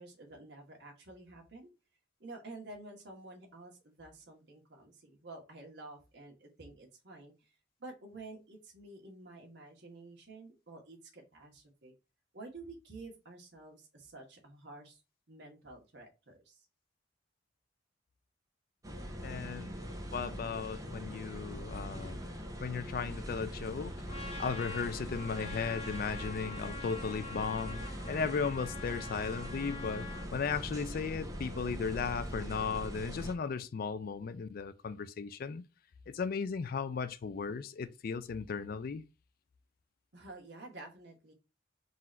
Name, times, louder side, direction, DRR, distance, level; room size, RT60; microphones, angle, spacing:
voice 1, 0.0-1.7 2.2-7.5 7.8-11.9 12.3-15.0 15.3-16.6 40.1-41.3, right 2 dB, 65° right, 1.4 m, -50 dB
sound 1, 18.8-33.3, equal, 20° right, 0.7 m, -42 dB
voice 2, 19.2-22.2 22.6-23.9 24.4-35.6 36.1-39.0, left 5 dB, 50° left, 0.4 m, -36 dB
Trumpet, 24.1-30.3, left 2 dB, 35° left, 0.9 m, -45 dB
3.9 x 2.5 x 4.2 m
head